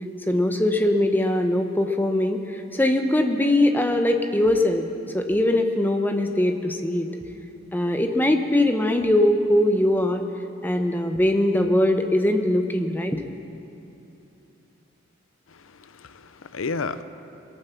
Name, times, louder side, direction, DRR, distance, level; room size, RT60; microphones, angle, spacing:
voice 1, 0.3-7.1 7.7-10.2 10.6-13.2, left 1 dB, 10° left, 5 dB, 0.8 m, -21 dB
voice 2, 15.5-17.0, left 4 dB, 80° left, 12 dB, 0.6 m, -32 dB
22.0 x 9.3 x 7.1 m, 2.9 s
head